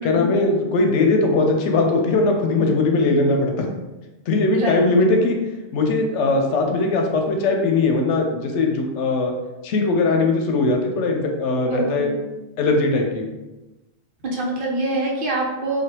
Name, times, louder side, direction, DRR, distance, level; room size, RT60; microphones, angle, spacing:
voice 1, 0.0-3.7 4.3-5.4 5.7-9.3 9.6-12.1 12.6-13.3, left 3 dB, 85° left, 3 dB, 0.9 m, -20 dB
voice 2, 11.7-12.2 14.2-15.8, right 2 dB, 60° right, -1 dB, 0.7 m, -25 dB
3.3 x 2.2 x 2.8 m, 1.1 s
omnidirectional pair, 1.2 m